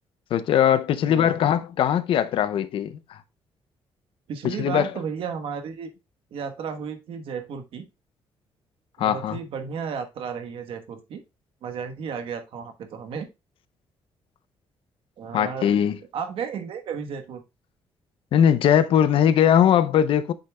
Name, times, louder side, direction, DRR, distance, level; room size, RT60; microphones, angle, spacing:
voice 1, 0.3-3.2 4.4-4.9 9.0-9.4 15.3-16.0 18.3-20.3, left 9 dB, 65° left, 0.6 m, -20 dB
voice 2, 1.1-1.5 4.3-5.9 6.3-7.9 9.0-11.2 11.6-13.3 15.2-15.7 16.1-17.4, right 6 dB, 65° right, 1.2 m, -33 dB
8.4 x 6.6 x 2.2 m
cardioid pair, 170°, 10 cm